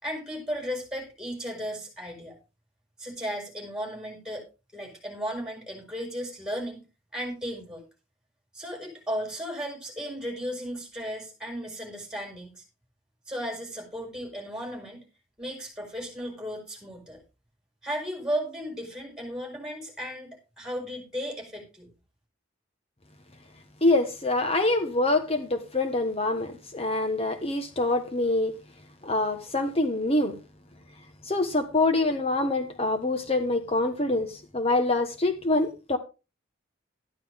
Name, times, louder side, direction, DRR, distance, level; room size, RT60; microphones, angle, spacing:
voice 1, 0.0-2.4 3.0-4.5 4.7-6.8 7.1-7.8 8.5-12.6 13.3-15.0 15.4-17.2 17.8-21.9, equal, 5° right, 5.0 m, -35 dB
voice 2, 23.8-28.5 29.0-30.4 31.3-36.0, left 2 dB, 30° left, 1.2 m, -25 dB
12.5 x 11.0 x 3.6 m
head